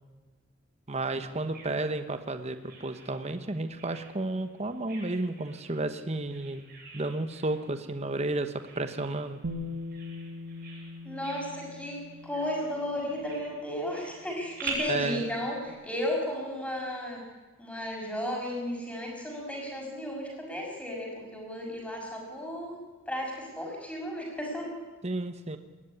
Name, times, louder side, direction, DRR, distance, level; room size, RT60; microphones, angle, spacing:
voice 1, 0.9-6.6 6.9-9.4 14.9-15.2 25.0-25.6, right 2 dB, 30° right, 9 dB, 1.1 m, -32 dB
Bird vocalization bird call bird song, 1.1-14.7, right 6 dB, 50° right, 7.6 m, -48 dB
Bass guitar, 9.4-15.5, left 2 dB, 85° right, 1.7 m, -42 dB
voice 2, 11.0-17.2 17.6-22.8 23.1-24.7, left 1 dB, 5° left, 0 dB, 6.0 m, -34 dB
20.0 x 14.0 x 9.8 m, 1.3 s
head